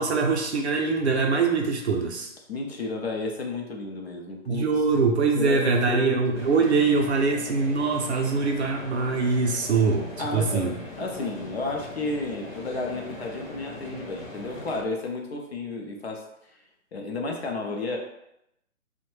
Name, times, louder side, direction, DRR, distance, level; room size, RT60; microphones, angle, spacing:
voice 1, 0.0-2.3 4.5-10.7, right 4 dB, 55° right, 1 dB, 0.5 m, -23 dB
voice 2, 2.5-4.7 5.4-6.4 10.2-10.7 11.0-16.6 16.9-18.0, left 3 dB, 50° left, 1 dB, 0.5 m, -32 dB
sound 1, 6.3-14.8, left 2 dB, 75° left, 0.9 m, -40 dB
2.6 x 2.1 x 3.1 m, 0.82 s
hypercardioid pair, 165°, 41 cm